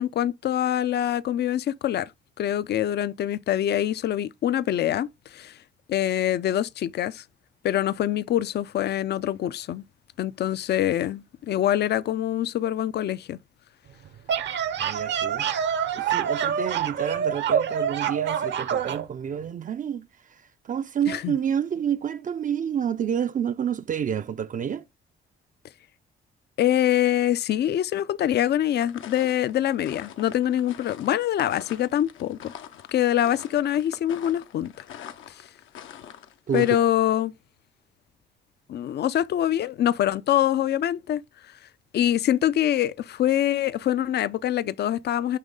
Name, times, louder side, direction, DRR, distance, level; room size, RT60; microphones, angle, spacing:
voice 1, 0.0-2.1 2.4-5.6 5.9-7.2 7.6-9.8 10.2-13.4 21.1-21.3 26.6-32.5 32.9-34.7 35.4-35.5 36.5-37.3 38.7-41.2 41.9-45.4, left 11 dB, 60° left, 0.5 m, -24 dB
sound 1, 14.0-19.0, right 8 dB, 65° right, 0.8 m, -26 dB
voice 2, 14.8-15.5 15.9-20.1 20.6-24.8 36.5-36.8, right 8 dB, 40° right, 0.4 m, -29 dB
sound 2, 28.7-36.8, left 9 dB, 80° left, 0.8 m, -44 dB
9.1 x 3.2 x 3.7 m
cardioid pair, 90°, 20 cm